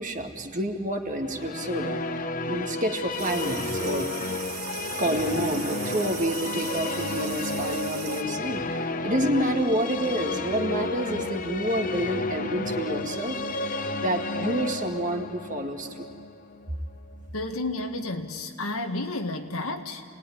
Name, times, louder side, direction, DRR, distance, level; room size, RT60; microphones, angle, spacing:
voice 1, 0.0-4.1 5.0-13.4 14.0-16.1, right 1 dB, 35° right, 4 dB, 1.8 m, -29 dB
sound 1, 1.2-17.3, left 2 dB, 40° left, 0.8 m, -32 dB
sound 2, 3.2-8.2, right 9 dB, 85° right, 2.0 m, -38 dB
voice 2, 17.3-20.0, left 2 dB, 80° left, 5 dB, 1.8 m, -31 dB
28.5 x 19.5 x 9.9 m, 2.4 s
head